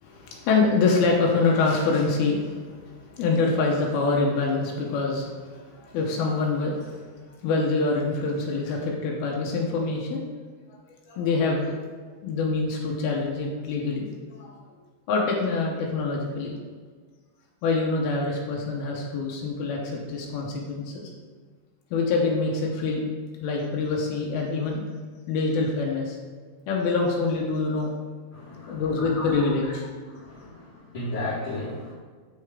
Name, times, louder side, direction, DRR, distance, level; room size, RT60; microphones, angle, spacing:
voice 1, 0.0-7.0 7.4-10.3 11.1-11.7 12.2-14.1 14.3-14.6 15.1-16.6 17.6-21.1 21.9-23.0 23.4-24.8 25.3-26.2 26.7-27.9 28.6-29.8, left 3 dB, 85° left, -1 dB, 2.7 m, -25 dB
voice 2, 28.3-29.4 30.1-31.9, left 1 dB, 25° left, -13 dB, 1.6 m, -34 dB
7.4 x 6.5 x 3.6 m, 1.5 s
omnidirectional pair, 4.5 m